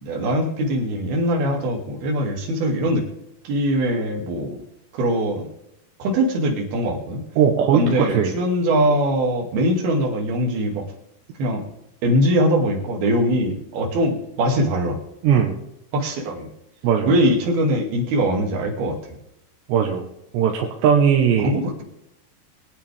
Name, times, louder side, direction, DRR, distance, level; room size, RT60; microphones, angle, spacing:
voice 1, 0.0-3.1 3.4-4.6 4.9-5.4 6.0-7.2 7.7-10.9 11.4-11.6 12.0-15.0 15.9-16.5 17.1-19.0 21.4-21.8, equal, 65° right, 1 dB, 4.2 m, -22 dB
voice 2, 7.4-8.3 15.2-15.6 16.8-17.2 19.7-20.1 20.3-21.5, right 7 dB, 80° right, 1 dB, 3.4 m, -18 dB
24.0 x 9.2 x 3.5 m, 0.81 s
omnidirectional pair, 5.0 m